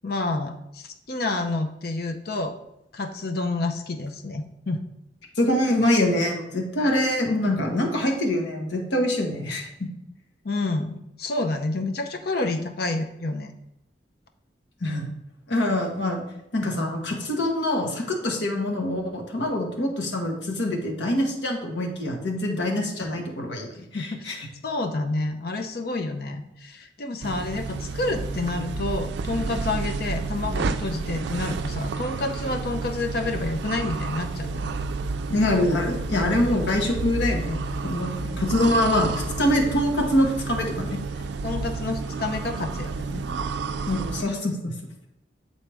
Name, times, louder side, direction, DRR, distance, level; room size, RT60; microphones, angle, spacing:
voice 1, 0.0-2.5 2.9-4.8 10.4-13.5 23.9-24.4 24.6-34.7 41.4-43.2, left 2 dB, 55° left, 5 dB, 0.6 m, -29 dB
voice 2, 5.4-9.7 14.8-15.1 15.5-16.2 16.5-24.4 35.3-41.0 43.8-44.7, left 1 dB, 75° left, 1 dB, 1.2 m, -24 dB
sound 1, 27.2-44.2, right 4 dB, 65° right, 0.3 m, -30 dB
7.3 x 4.1 x 3.4 m, 0.84 s
head